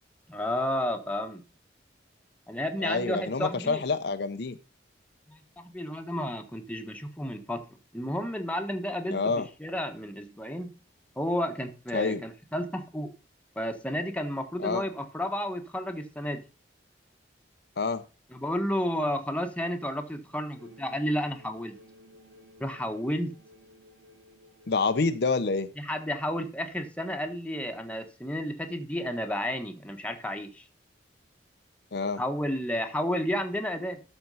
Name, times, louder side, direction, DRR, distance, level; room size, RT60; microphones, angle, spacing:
voice 1, 0.3-1.4 2.5-3.8 5.3-7.6 7.9-10.7 11.2-13.1 13.5-16.4 18.3-21.7 22.6-23.3 25.8-30.6 32.2-34.0, equal, 5° left, 5 dB, 1.1 m, -32 dB
voice 2, 2.8-4.6 9.1-9.5 11.9-12.2 14.6-14.8 17.8-18.0 24.7-25.7 31.9-32.2, left 4 dB, 60° left, 10 dB, 0.6 m, -27 dB
sound 1, 20.5-25.6, equal, 70° right, 2.9 m, -55 dB
12.5 x 4.5 x 5.4 m, 0.33 s
head